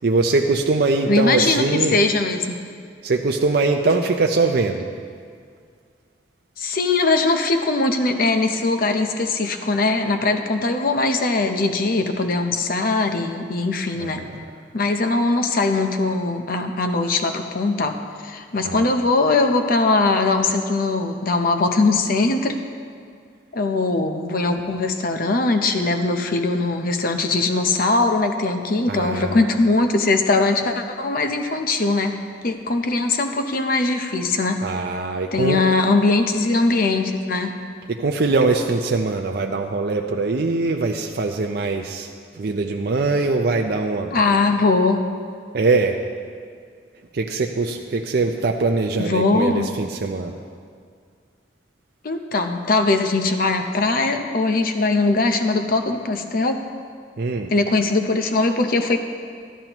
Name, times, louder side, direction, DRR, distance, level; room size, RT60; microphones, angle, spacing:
voice 1, 0.0-2.0 3.0-4.9 13.9-14.4 18.6-18.9 28.9-29.6 34.6-35.6 37.9-44.4 45.5-46.0 47.1-50.3 57.2-57.5, right 3 dB, 55° right, 3 dB, 0.5 m, -22 dB
voice 2, 1.1-1.6 1.9-2.6 6.6-14.2 14.7-18.0 18.2-22.6 23.5-32.2 32.4-34.6 35.3-37.5 44.1-45.1 49.0-49.7 52.0-56.6 57.5-59.0, left 3 dB, 50° left, 6 dB, 0.7 m, -21 dB
13.0 x 12.0 x 3.0 m, 2.2 s
head